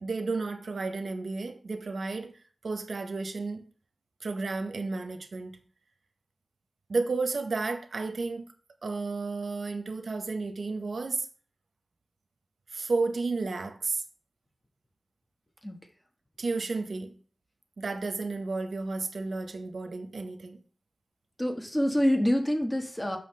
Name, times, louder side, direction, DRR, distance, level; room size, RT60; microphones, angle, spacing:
voice 1, 0.0-3.7 4.2-5.6 6.9-8.5 8.8-11.3 12.7-14.0 16.4-17.2 17.8-20.6, right 3 dB, 80° right, 0.7 m, -32 dB
voice 2, 21.4-23.2, equal, 20° left, 1.2 m, -26 dB
5.8 x 5.7 x 3.2 m
wide cardioid pair, 65°, 0 cm